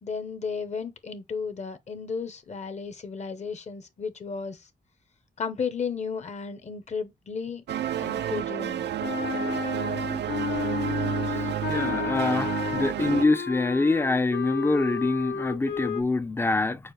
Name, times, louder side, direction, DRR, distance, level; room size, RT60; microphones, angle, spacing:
voice 1, 0.0-4.6 5.4-7.6 8.0-8.9, left 5 dB, 40° left, 0.7 m, -34 dB
sound 1, 7.7-13.3, right 10 dB, 85° right, 0.4 m, -30 dB
Wind instrument woodwind instrument, 9.0-16.0, left 6 dB, 80° left, 0.8 m, -32 dB
voice 2, 11.7-16.9, left 3 dB, 15° left, 0.3 m, -25 dB
6.4 x 2.5 x 3.1 m
wide cardioid pair, 175°, 17 cm